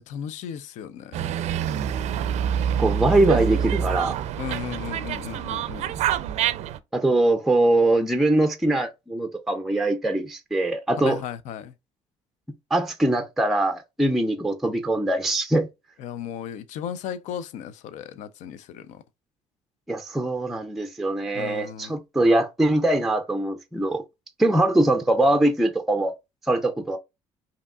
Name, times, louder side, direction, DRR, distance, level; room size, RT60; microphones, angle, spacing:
voice 1, 0.1-1.2 4.4-5.9 11.0-11.7 16.0-19.0 21.3-21.9, left 9 dB, 70° left, 0.5 m, -35 dB
Dog, 1.1-6.8, right 9 dB, 60° right, 0.4 m, -26 dB
voice 2, 2.8-4.2 6.9-11.2 12.7-15.7 19.9-24.0 24.4-26.1 26.5-27.0, right 1 dB, ahead, 0.5 m, -22 dB
5.0 x 2.8 x 2.3 m
cardioid pair, 115°, 13 cm